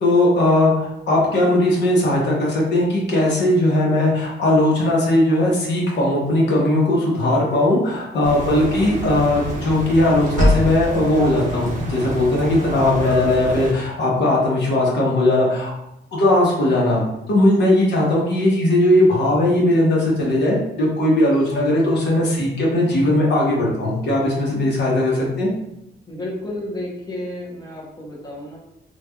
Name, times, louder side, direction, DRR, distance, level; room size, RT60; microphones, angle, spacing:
voice 1, 0.0-15.7 16.1-25.5, left 1 dB, 65° left, -4 dB, 0.9 m, -18 dB
sound 1, 8.2-13.7, equal, 40° right, 0.6 m, -25 dB
voice 2, 26.1-28.6, left 1 dB, 20° left, -4 dB, 0.7 m, -31 dB
3.2 x 2.3 x 2.2 m, 0.84 s
wide cardioid pair, 150°, 19 cm